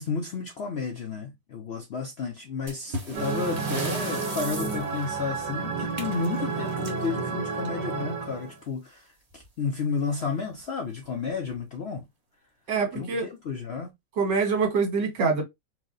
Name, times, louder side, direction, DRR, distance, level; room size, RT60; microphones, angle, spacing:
voice 1, 0.0-9.1 9.3-12.0 12.9-13.9, left 5 dB, 65° left, 0.6 m, -32 dB
sound 1, 2.7-8.0 9.3-9.5 9.8-9.9 10.5-10.6 11.3-11.6, right 2 dB, 30° right, 0.8 m, -39 dB
sound 2, 3.1-8.6, right 5 dB, 75° right, 1.7 m, -31 dB
voice 2, 12.7-13.3 14.2-15.4, right 4 dB, 90° right, 2.1 m, -25 dB
4.7 x 2.1 x 3.8 m
omnidirectional pair, 1.8 m